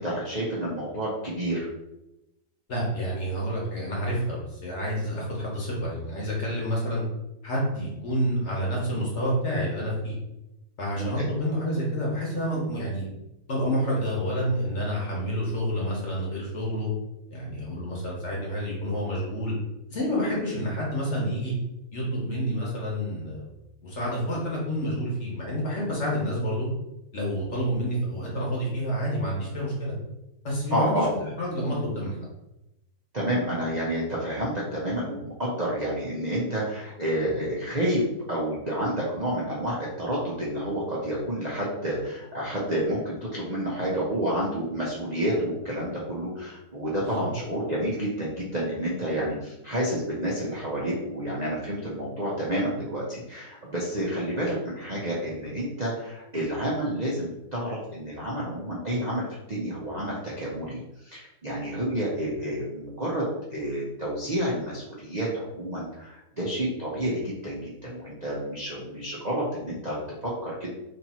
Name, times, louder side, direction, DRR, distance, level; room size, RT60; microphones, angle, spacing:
voice 1, 0.0-1.7 11.0-11.3 20.3-20.4 30.7-31.1 33.1-63.2 63.5-70.7, right 1 dB, 90° right, -6 dB, 0.3 m, -29 dB
voice 2, 2.7-7.0 7.4-10.1 10.8-13.1 13.5-16.9 17.3-19.5 19.9-21.5 21.9-23.5 23.8-26.7 27.1-29.9 30.4-32.1 47.0-47.3, equal, 45° left, -4 dB, 1.1 m, -29 dB
3.3 x 2.9 x 4.2 m, 0.92 s
omnidirectional pair, 2.0 m